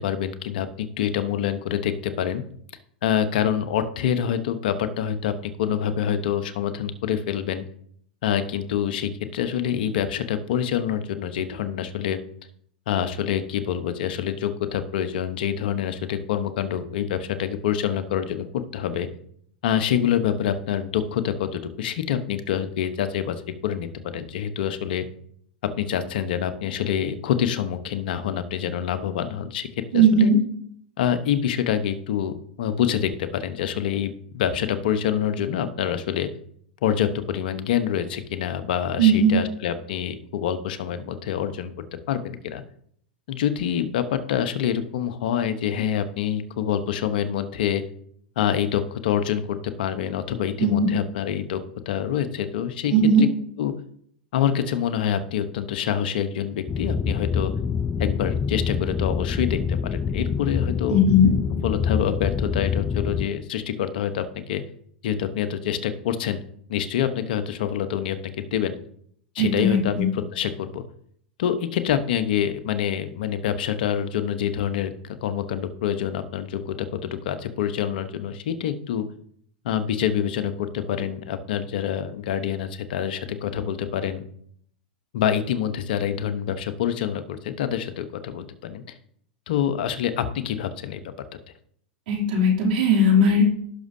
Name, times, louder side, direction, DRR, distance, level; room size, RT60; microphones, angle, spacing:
voice 1, 0.0-2.4 3.0-7.6 8.2-12.2 12.9-19.1 19.6-23.4 23.6-25.0 25.8-29.7 29.9-30.3 31.0-36.3 36.8-42.6 43.3-47.8 48.4-53.3 53.6-53.7 54.3-57.5 58.0-61.0 61.6-64.6 65.0-66.4 66.7-68.7 69.3-70.8 71.4-74.9 75.2-79.0 79.6-84.2 85.1-88.9 89.5-91.0, left 9 dB, 70° left, 10 dB, 0.9 m, -26 dB
voice 2, 29.9-30.4 39.0-39.4 50.6-50.7 52.9-53.2 60.9-61.3 69.4-70.1 92.1-93.6, equal, 65° right, -2 dB, 2.9 m, -18 dB
sound 1, 56.7-63.3, left 6 dB, 20° left, 0.4 m, -26 dB
16.5 x 6.2 x 2.7 m, 0.65 s
hypercardioid pair, 110°, 5 cm